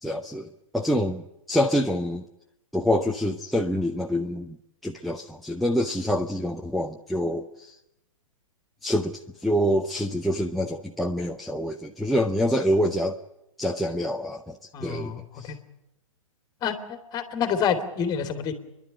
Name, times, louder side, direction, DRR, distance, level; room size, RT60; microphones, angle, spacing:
voice 1, 0.0-2.2 2.7-4.6 4.8-7.8 8.8-13.2 13.6-15.5, equal, ahead, 6 dB, 0.8 m, -26 dB
voice 2, 14.7-15.6 16.6-18.5, left 7 dB, 25° left, 8 dB, 2.7 m, -28 dB
28.5 x 11.5 x 9.9 m, 0.88 s
hypercardioid pair, 130°, 17 cm